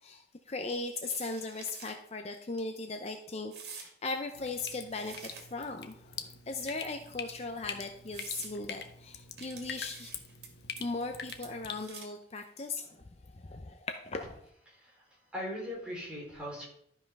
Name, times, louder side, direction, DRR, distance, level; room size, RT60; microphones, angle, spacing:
voice 1, 0.0-5.2 5.5-10.1 10.8-13.0 13.3-14.2, left 3 dB, 35° left, 5 dB, 0.6 m, -38 dB
sound 1, 0.7-2.0 2.4-2.6 3.5-3.9 4.5-5.7 6.5-7.2 7.7-7.8 8.1-8.5 9.4-10.5 10.8-11.0 11.3-12.2, right 5 dB, 65° right, 2.3 m, -48 dB
Drip, 4.3-11.8, left 6 dB, 70° left, 1.0 m, -45 dB
voice 2, 14.7-16.6, equal, 5° right, -5 dB, 4.4 m, -40 dB
12.5 x 5.7 x 5.3 m, 0.72 s
head